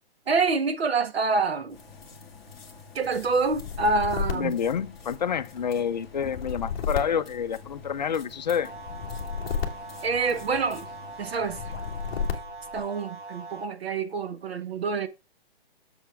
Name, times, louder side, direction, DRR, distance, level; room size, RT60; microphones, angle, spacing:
voice 1, 0.3-1.8 2.9-4.6 10.0-10.9 11.2-11.6 12.7-15.1, right 4 dB, 80° right, 1.6 m, -26 dB
sound 1, 1.7-12.3, left 5 dB, ahead, 2.1 m, -48 dB
sound 2, 3.5-5.4 6.1-8.1 8.8-10.7 11.5-12.8, left 7 dB, 20° left, 1.6 m, -33 dB
voice 2, 4.3-8.7, left 7 dB, 45° left, 0.6 m, -28 dB
sound 3, 8.6-13.6, right 3 dB, 55° right, 1.6 m, -42 dB
7.7 x 7.1 x 3.4 m
hypercardioid pair, 175°, 31 cm